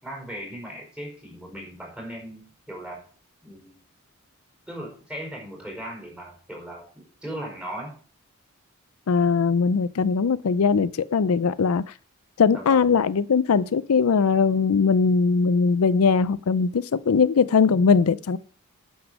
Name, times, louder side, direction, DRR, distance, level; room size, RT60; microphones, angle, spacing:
voice 1, 0.0-3.0 3.4-3.8 4.7-7.9 12.5-13.0, equal, 5° right, 5.0 m, -38 dB
voice 2, 9.1-11.8 12.4-18.4, left 5 dB, 80° left, 0.5 m, -20 dB
9.6 x 7.1 x 6.1 m
head